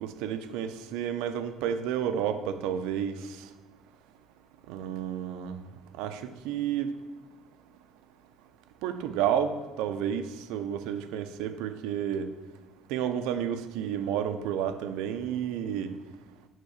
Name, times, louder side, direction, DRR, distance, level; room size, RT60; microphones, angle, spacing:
voice 1, 0.0-3.2 4.7-5.6 6.0-6.9 8.8-12.3 12.9-15.9, right 9 dB, 80° right, 9 dB, 0.6 m, -31 dB
8.0 x 3.7 x 6.5 m, 1.2 s
cardioid pair, 170°, 0 cm